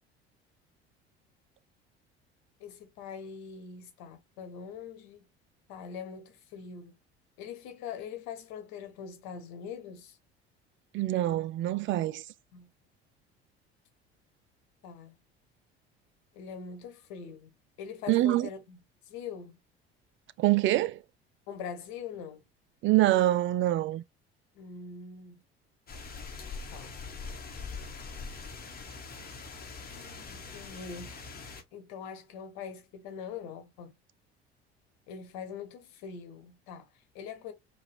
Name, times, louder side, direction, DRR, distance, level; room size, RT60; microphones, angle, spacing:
voice 1, 2.6-5.3 5.7-6.9 7.4-10.2 12.5-12.7 14.8-15.1 16.3-18.8 19.0-19.6 21.5-22.4 24.5-25.4 26.7-27.0 29.9-31.2 31.7-33.9 35.1-37.5, left 7 dB, 60° left, 1.4 m, -43 dB
voice 2, 10.9-12.2 18.1-18.5 20.4-21.0 22.8-24.0, right 15 dB, 40° right, 0.5 m, -25 dB
sound 1, 25.9-31.6, left 4 dB, 30° left, 1.4 m, -42 dB
4.7 x 2.5 x 3.2 m
figure-of-eight pair, 60°, 32 cm